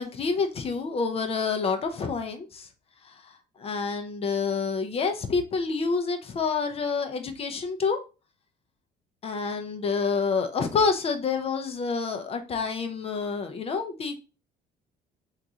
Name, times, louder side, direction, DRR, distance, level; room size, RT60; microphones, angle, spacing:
voice 1, 0.0-2.7 3.0-3.3 3.6-8.0 9.2-14.2, left 5 dB, 35° left, 0.5 m, -28 dB
3.7 x 2.4 x 2.7 m
cardioid pair, 110°, 17 cm